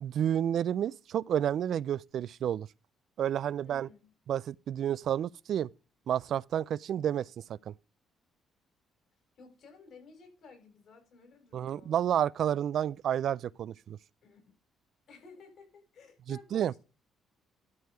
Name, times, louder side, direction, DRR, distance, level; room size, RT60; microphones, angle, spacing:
voice 1, 0.0-2.7 3.2-3.9 4.3-5.7 6.1-7.3 7.7-7.8 11.5-14.0 16.3-16.7, right 10 dB, 65° right, 0.3 m, -30 dB
voice 2, 3.6-4.1 9.4-12.1 14.2-14.4 15.1-16.8, left 4 dB, 60° left, 6.5 m, -54 dB
12.5 x 4.7 x 4.9 m
cardioid pair, 80°, 0 cm